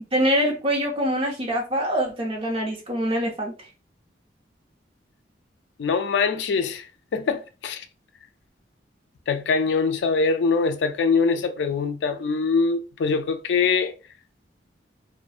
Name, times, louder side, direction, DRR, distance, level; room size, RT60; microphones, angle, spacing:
voice 1, 0.1-3.5, equal, 30° right, 0.7 m, -24 dB
voice 2, 5.8-6.9 7.1-7.8 9.3-13.9, left 4 dB, 75° left, 0.4 m, -23 dB
2.5 x 2.1 x 2.4 m
head